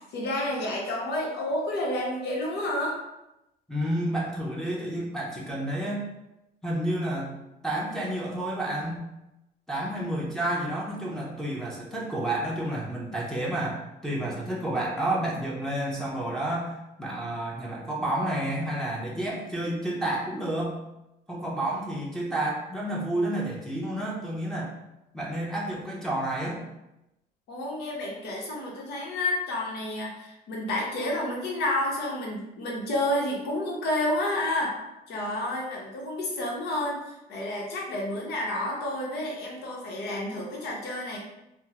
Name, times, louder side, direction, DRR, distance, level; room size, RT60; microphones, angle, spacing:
voice 1, 0.0-3.0 27.5-34.8 35.1-41.2, left 1 dB, 75° left, -2 dB, 0.9 m, -30 dB
voice 2, 3.7-6.1 6.6-7.4 7.6-9.0 9.7-20.8 21.3-24.7 25.1-26.7, right 1 dB, 5° left, -5 dB, 0.7 m, -30 dB
3.4 x 2.0 x 2.9 m, 0.91 s
cardioid pair, 110°, 17 cm